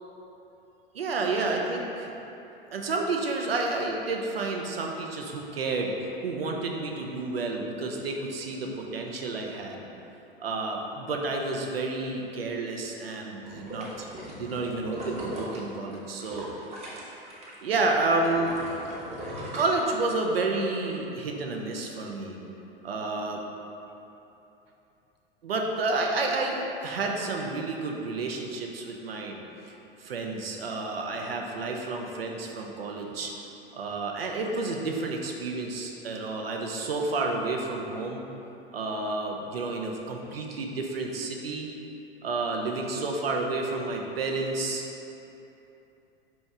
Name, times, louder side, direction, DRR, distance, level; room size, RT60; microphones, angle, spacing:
voice 1, 0.9-2.1 2.7-5.9 6.2-9.8 10.4-14.1 14.4-16.5 17.6-18.5 19.5-22.4 22.8-23.4 25.4-29.4 30.0-33.3 33.7-38.2 38.7-41.7 42.2-44.8, right 3 dB, 75° right, 1 dB, 0.6 m, -30 dB
sound 1, 13.4-17.5 17.9-20.4 20.8-20.9, equal, 20° right, 0.9 m, -39 dB
5.1 x 2.9 x 3.5 m, 2.9 s
figure-of-eight pair, 85°, 30 cm